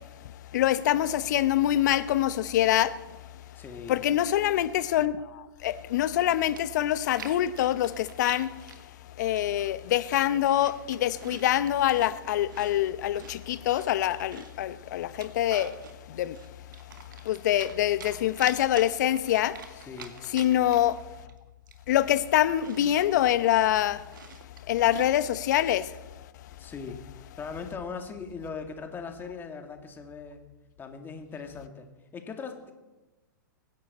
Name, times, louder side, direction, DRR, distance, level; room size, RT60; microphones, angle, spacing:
voice 1, 0.5-2.9 3.9-8.5 9.2-15.7 16.1-16.4 17.3-19.5 20.3-21.0 21.9-24.0 24.7-25.9, left 12 dB, 60° left, 0.9 m, -25 dB
voice 2, 3.6-4.0 19.8-20.2 26.6-27.0 27.4-30.4 30.8-32.7, left 5 dB, 20° left, 2.1 m, -39 dB
Chewing mastication, 6.6-8.8 9.4-9.7 10.1-12.1 12.5-14.6 15.0-16.0 16.3-17.7 18.0-21.0 21.3-21.4 21.7-25.7, right 6 dB, 70° right, 2.0 m, -47 dB
24.5 x 10.5 x 4.3 m
hypercardioid pair, 115°, 11 cm